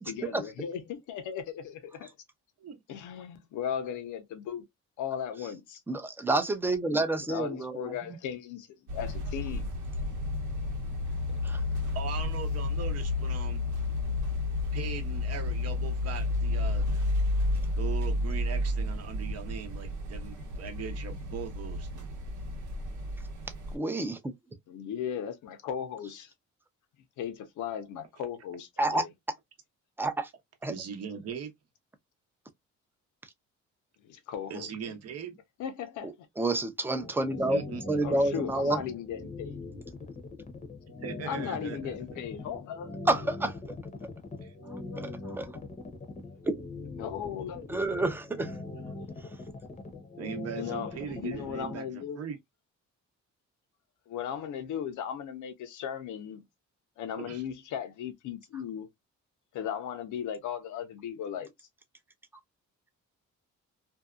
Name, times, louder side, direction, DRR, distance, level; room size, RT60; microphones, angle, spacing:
voice 1, 0.1-2.1 2.9-4.6 5.0-5.8 7.3-8.7 8.9-9.7 11.6-11.7 24.7-26.3 27.2-29.1 34.0-35.0 35.6-36.1 38.0-39.6 41.2-42.9 47.0-47.7 48.9-49.0 50.5-52.3 54.1-56.4 57.0-58.9 59.5-61.7, left 8 dB, 85° left, 0.7 m, -37 dB
voice 2, 5.9-7.9 11.4-11.6 23.7-24.2 28.8-29.1 30.0-30.3 30.6-30.7 36.4-37.6 37.9-38.8 43.1-43.8 44.9-45.5 46.5-46.6 47.7-48.5, right 2 dB, 5° right, 0.5 m, -29 dB
sound 1, 8.9-23.8, left 2 dB, 80° right, 1.0 m, -31 dB
voice 3, 11.9-13.6 14.7-16.9 17.8-22.1 30.7-31.5 34.5-35.4 37.5-38.4 40.9-42.2 44.4-44.5 50.2-52.4 57.2-57.4, right 7 dB, 55° right, 0.8 m, -40 dB
sound 2, 37.0-51.7, left 3 dB, 25° left, 0.8 m, -41 dB
2.7 x 2.3 x 2.3 m
cardioid pair, 90°, 30 cm